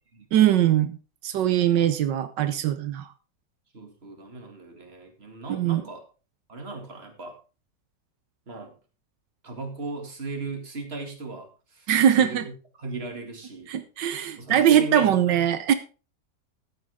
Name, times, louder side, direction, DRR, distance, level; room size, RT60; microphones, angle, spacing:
voice 1, 0.3-1.0 1.2-3.1 5.5-5.8 11.9-12.4 13.7-15.7, right 10 dB, 85° right, 11 dB, 1.5 m, -21 dB
voice 2, 3.7-6.0 6.5-7.4 8.5-8.7 9.4-11.9 12.2-13.7 14.4-15.5, right 3 dB, 35° right, 4 dB, 2.5 m, -37 dB
13.5 x 9.5 x 3.6 m, 0.35 s
omnidirectional pair, 1.9 m